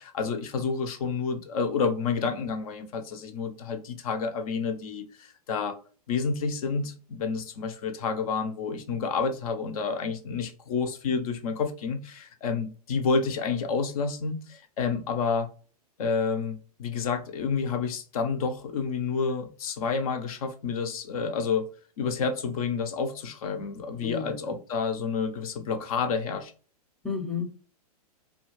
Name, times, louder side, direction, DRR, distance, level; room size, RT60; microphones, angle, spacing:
voice 1, 0.0-5.8 6.1-15.5 16.0-21.6 22.0-26.5, left 5 dB, 60° left, 0.6 m, -29 dB
voice 2, 24.0-24.5 27.0-27.5, left 6 dB, ahead, 0.5 m, -32 dB
2.4 x 2.3 x 3.0 m
hypercardioid pair, 120°, 20 cm